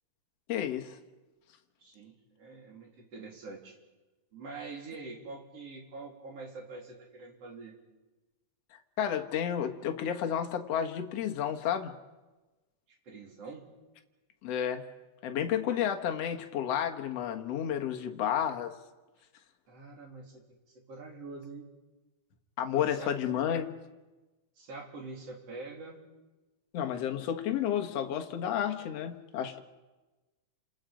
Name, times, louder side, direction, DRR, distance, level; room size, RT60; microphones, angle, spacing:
voice 1, 0.5-0.9 8.7-12.0 14.4-14.9 15.2-18.8 22.6-23.7 26.7-29.6, left 9 dB, 55° left, 5 dB, 2.2 m, -31 dB
voice 2, 1.8-3.8 4.3-7.8 13.1-13.7 19.7-20.5 20.7-21.7 22.8-23.5 24.6-26.0, right 3 dB, 45° right, 0 dB, 4.2 m, -45 dB
29.5 x 27.0 x 5.2 m, 1.2 s
omnidirectional pair, 3.9 m